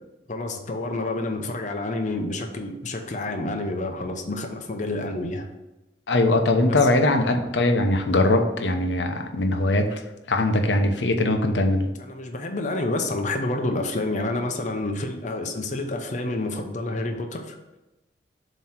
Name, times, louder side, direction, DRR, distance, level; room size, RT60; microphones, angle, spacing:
voice 1, 0.3-5.5 6.6-6.8 12.0-17.8, left 2 dB, 45° left, 4 dB, 0.7 m, -29 dB
voice 2, 6.1-10.0 10.3-11.9, left 2 dB, 90° left, 5 dB, 0.8 m, -21 dB
7.4 x 3.1 x 5.8 m, 1.0 s
head